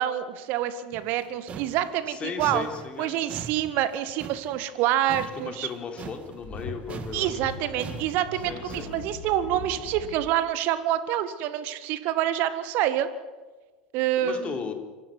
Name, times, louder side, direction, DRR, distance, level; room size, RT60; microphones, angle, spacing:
voice 1, 0.0-2.7 3.0-5.7 7.1-13.1 13.9-14.6, right 11 dB, 45° right, 12 dB, 1.7 m, -27 dB
sound 1, 0.9-6.6 6.9-9.1, right 6 dB, 30° right, 1.8 m, -41 dB
voice 2, 2.1-3.2 5.3-7.5 8.5-8.9 14.2-14.7, left 6 dB, 25° left, 4 dB, 3.6 m, -36 dB
sound 2, 6.1-10.3, left 3 dB, 45° left, 4.5 m, -40 dB
25.5 x 15.0 x 9.5 m, 1.3 s
figure-of-eight pair, 80°, 4 cm